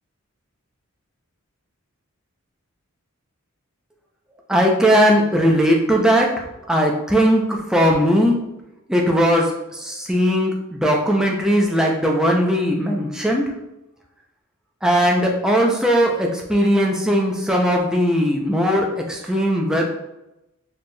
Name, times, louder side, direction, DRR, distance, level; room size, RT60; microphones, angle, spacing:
voice 1, 4.5-6.3 6.7-8.4 8.9-13.4 14.8-19.8, equal, 5° right, -1 dB, 0.4 m, -18 dB
4.3 x 3.1 x 2.2 m, 0.91 s
head